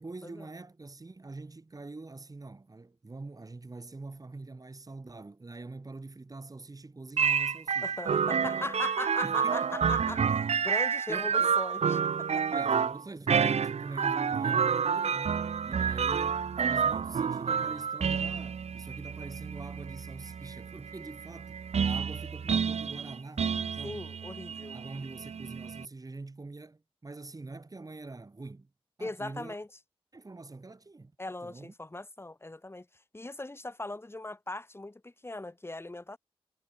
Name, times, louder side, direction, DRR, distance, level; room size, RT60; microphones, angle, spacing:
voice 1, 0.0-8.0 9.2-9.6 11.1-11.6 12.5-24.0 24.7-28.7 29.0-29.6 30.1-31.1 31.4-31.7, right 3 dB, 35° right, 7.8 m, -44 dB
sound 1, 7.2-25.9, right 6 dB, 85° right, 0.9 m, -29 dB
voice 2, 7.8-12.4 23.8-24.8 29.0-29.7 31.2-36.2, left 2 dB, 25° left, 5.7 m, -40 dB
wide cardioid pair, 120°, 11 cm